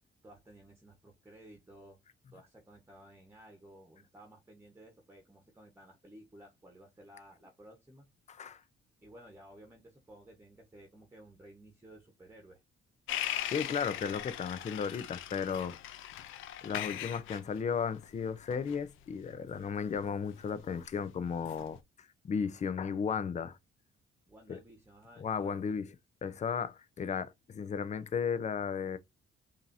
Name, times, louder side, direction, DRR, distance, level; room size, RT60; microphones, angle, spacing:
voice 1, 0.2-2.0 2.3-8.1 9.0-12.6 24.3-25.8, right 1 dB, 10° right, 1.2 m, -55 dB
voice 2, 8.3-8.6 13.2-15.8 16.6-21.8 22.2-23.6 24.5-24.6 25.2-25.8 26.2-29.0, left 6 dB, 35° left, 0.6 m, -35 dB
sound 1, 13.1-20.9 21.4-21.8, left 12 dB, 85° left, 0.5 m, -40 dB
5.0 x 2.8 x 2.6 m
cardioid pair, 90°, 20 cm